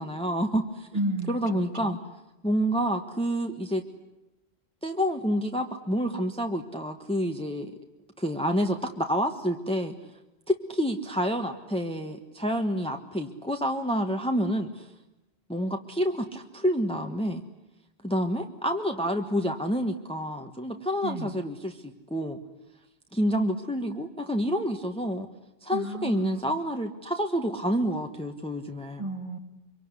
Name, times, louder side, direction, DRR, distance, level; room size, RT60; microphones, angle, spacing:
voice 1, 0.0-0.9 1.3-2.0 2.4-3.8 4.8-7.7 8.2-9.9 10.5-14.9 15.5-17.4 18.0-22.4 23.1-25.3 25.6-29.0, equal, 5° left, 5 dB, 1.3 m, -28 dB
voice 2, 0.9-2.0 21.0-21.4 25.7-26.6 29.0-29.4, right 1 dB, 30° right, 4 dB, 2.8 m, -33 dB
25.5 x 24.0 x 9.8 m, 0.96 s
omnidirectional pair, 1.0 m